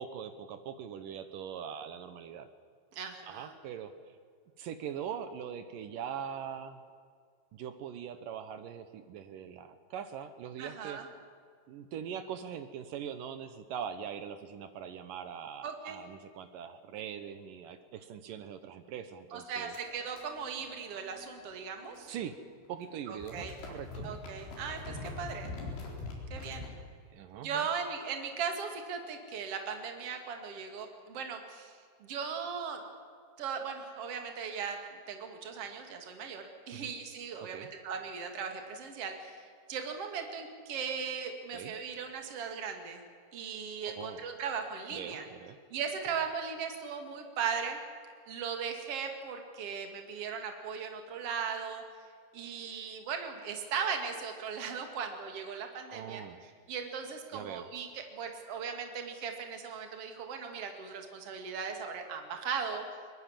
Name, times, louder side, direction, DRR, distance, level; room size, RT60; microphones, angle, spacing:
voice 1, 0.0-2.5 3.2-4.2 4.6-6.8 7.5-11.0 11.7-19.8 22.1-22.4 22.7-24.1 27.1-27.7 36.7-36.9 37.4-37.7 41.5-41.8 43.9-44.3 44.9-45.6 55.9-56.5 57.3-57.7, right 8 dB, 70° right, 10 dB, 2.2 m, -42 dB
voice 2, 2.9-3.5 10.6-11.1 15.6-16.0 19.3-22.1 23.1-23.5 24.0-25.5 26.3-26.7 27.4-32.8 33.4-34.8 35.1-43.0 43.3-45.2 45.7-47.8 48.3-51.8 52.3-56.2 56.7-62.8, right 6 dB, 40° right, 4 dB, 2.8 m, -38 dB
sound 1, 19.7-22.4 22.7-26.7, left 3 dB, 75° left, 6.2 m, -44 dB
22.5 x 21.5 x 7.4 m, 2.2 s
omnidirectional pair, 4.9 m